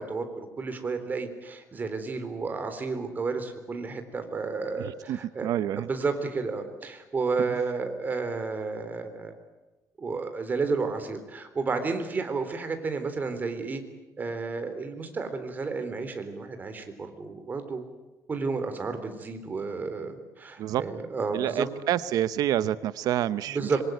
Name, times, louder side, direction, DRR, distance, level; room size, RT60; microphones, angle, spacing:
voice 1, 0.0-5.5 5.8-9.3 10.0-13.8 14.2-17.8 18.3-21.7 23.5-23.8, right 4 dB, 25° right, 7 dB, 3.7 m, -31 dB
voice 2, 4.8-5.9 7.5-7.6 20.6-20.8 21.3-23.7, right 11 dB, 70° right, 15 dB, 0.9 m, -28 dB
25.5 x 23.5 x 9.4 m, 1.1 s
cardioid pair, 150°, 7 cm